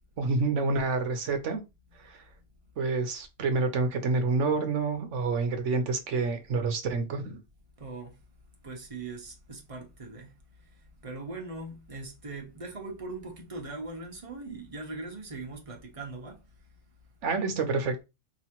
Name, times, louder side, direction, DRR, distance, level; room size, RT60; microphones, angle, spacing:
voice 1, 0.2-1.6 2.0-2.2 2.8-7.4 17.2-18.0, right 3 dB, 80° right, 1.2 m, -28 dB
voice 2, 7.8-8.1 8.6-10.3 10.7-16.4, right 3 dB, 30° right, 1.0 m, -40 dB
4.8 x 3.0 x 3.0 m
omnidirectional pair, 1.2 m